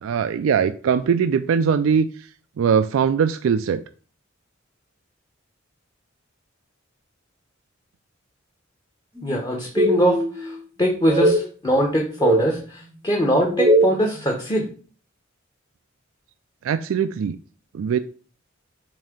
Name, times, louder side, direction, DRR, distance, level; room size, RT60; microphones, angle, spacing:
voice 1, 0.0-2.3 2.6-3.8 16.6-17.4 17.7-18.0, right 7 dB, 75° right, 10 dB, 0.3 m, -21 dB
voice 2, 9.2-14.7, equal, 20° left, 0 dB, 0.9 m, -22 dB
sound 1, 9.2-9.4 9.8-10.6 11.1-11.4 11.9-12.5 13.2-14.0, right 1 dB, 15° right, 0.7 m, -20 dB
7.4 x 2.7 x 5.0 m, 0.40 s
head